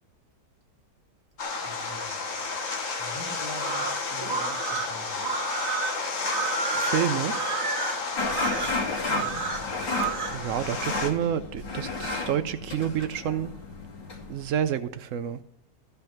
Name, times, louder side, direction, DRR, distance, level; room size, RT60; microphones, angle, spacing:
sound 1, 1.4-11.1, left 4 dB, 50° left, 1.6 m, -32 dB
voice 1, 1.6-2.5 3.0-5.2 9.0-9.5, right 1 dB, 10° right, -3 dB, 2.9 m, -44 dB
sound 2, 3.5-10.4, right 5 dB, 40° right, 1.8 m, -31 dB
voice 2, 6.7-7.3 10.3-13.5 14.3-15.4, right 9 dB, 85° right, 11 dB, 0.7 m, -28 dB
sound 3, 8.2-14.5, left 3 dB, 80° left, 2.8 m, -32 dB
14.0 x 5.5 x 5.8 m, 0.77 s
omnidirectional pair, 1.9 m